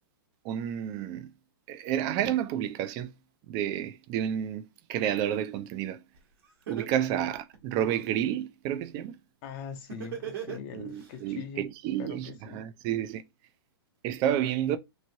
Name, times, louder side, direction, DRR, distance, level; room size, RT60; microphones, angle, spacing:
voice 1, 0.4-1.3 1.7-3.1 3.5-6.0 6.7-9.2 10.7-13.2 14.0-14.8, right 10 dB, 30° right, 0.4 m, -30 dB
Laughter, 6.1-6.2 6.7-8.1 9.9-11.1, right 9 dB, 60° right, 1.3 m, -37 dB
voice 2, 9.4-12.7, left 7 dB, 35° left, 0.5 m, -42 dB
3.0 x 2.5 x 2.7 m
hypercardioid pair, 140°, 13 cm